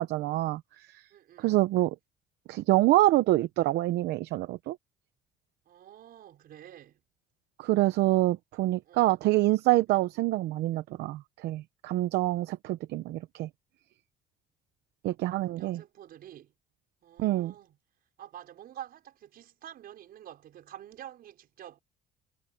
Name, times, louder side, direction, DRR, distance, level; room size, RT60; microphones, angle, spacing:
voice 1, 0.0-1.0 1.4-2.0 2.5-4.8 7.6-13.5 15.0-15.8 17.2-17.5, right 17 dB, 80° right, 0.8 m, -26 dB
voice 2, 1.1-1.6 5.7-7.0 8.8-9.2 10.0-10.1 15.4-16.5 17.0-17.8 18.2-21.8, right 11 dB, 65° right, 5.3 m, -48 dB
cardioid pair, 110°, 17 cm